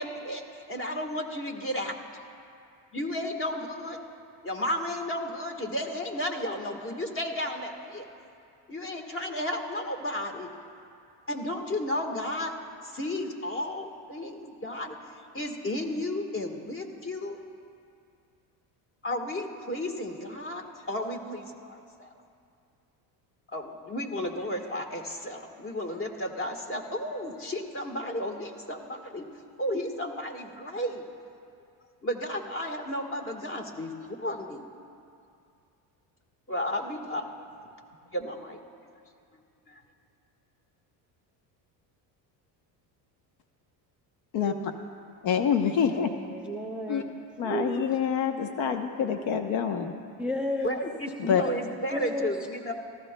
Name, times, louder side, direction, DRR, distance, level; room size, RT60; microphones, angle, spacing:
voice 1, 0.0-2.0 2.9-4.0 4.4-8.1 8.7-10.5 11.3-12.5 12.8-15.0 15.3-17.4 19.0-22.1 23.5-29.3 29.6-31.0 32.0-34.7 36.5-37.3 38.1-38.6 39.7-39.8 50.6-52.7, left 1 dB, 25° left, 1.5 m, -33 dB
voice 2, 45.2-46.1 46.9-47.0 47.4-49.9 51.2-51.4, left 7 dB, 65° left, 1.0 m, -26 dB
voice 3, 45.8-47.1 47.4-47.8 50.2-50.8 51.9-52.4, equal, ahead, 0.5 m, -33 dB
23.5 x 15.0 x 2.2 m
supercardioid pair, 100°, 50 cm